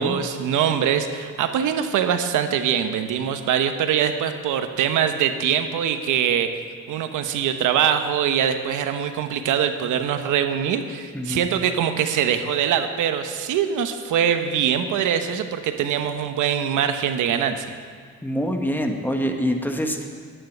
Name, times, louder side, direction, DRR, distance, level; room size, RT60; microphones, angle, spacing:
voice 1, 0.0-6.5 6.9-17.7, right 8 dB, 85° right, 8 dB, 1.1 m, -23 dB
voice 2, 11.1-11.5 18.2-20.1, equal, 5° left, 3 dB, 1.6 m, -25 dB
11.5 x 9.6 x 7.8 m, 2.1 s
cardioid pair, 90°, 30 cm